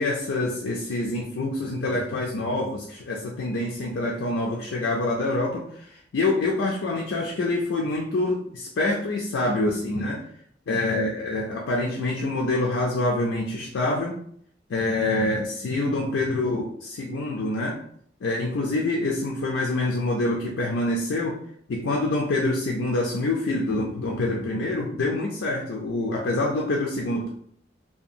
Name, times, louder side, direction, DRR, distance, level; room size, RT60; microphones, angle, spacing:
voice 1, 0.0-10.2 10.7-14.2 14.7-17.8 18.2-21.4 21.7-27.3, left 2 dB, 80° left, -2 dB, 0.4 m, -26 dB
2.7 x 2.3 x 2.5 m, 0.64 s
head